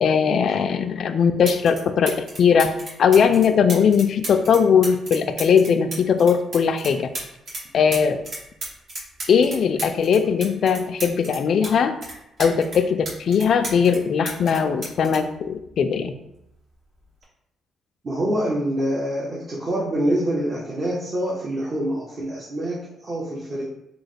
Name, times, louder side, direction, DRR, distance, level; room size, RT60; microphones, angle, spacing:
voice 1, 0.0-2.7 3.0-7.1 7.7-8.2 9.3-11.9 12.4-16.1, left 6 dB, 60° left, 8 dB, 0.3 m, -19 dB
sound 1, 1.0-1.1 1.4-1.8 2.1-7.6 7.9-11.7 12.0-14.0 14.2-16.1 17.0-17.2, right 2 dB, 65° right, 1.4 m, -34 dB
voice 2, 18.0-23.6, right 1 dB, 40° right, -6 dB, 0.7 m, -25 dB
2.9 x 2.1 x 4.1 m, 0.82 s
cardioid pair, 90°, 0 cm